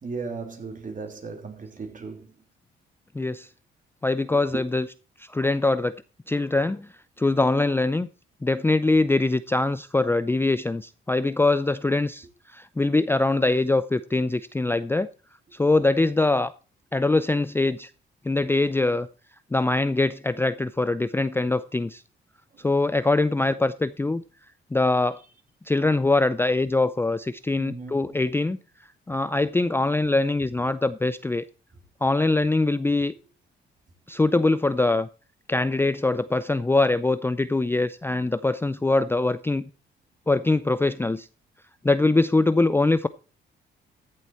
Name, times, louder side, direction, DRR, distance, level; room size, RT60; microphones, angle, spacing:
voice 1, 0.0-2.3 4.5-4.6 27.6-28.1, right 4 dB, 40° right, 3.4 m, -36 dB
voice 2, 3.1-3.5 4.0-4.9 5.2-6.0 6.3-6.9 7.2-8.1 8.4-15.1 15.5-16.5 16.9-17.9 18.2-19.1 19.5-22.0 22.6-24.2 24.7-25.2 25.7-28.6 29.1-31.4 32.0-33.1 34.1-35.1 35.5-39.6 40.3-41.3 41.8-43.1, left 2 dB, 10° left, 0.5 m, -23 dB
14.5 x 7.7 x 4.3 m
cardioid pair, 90°, 20 cm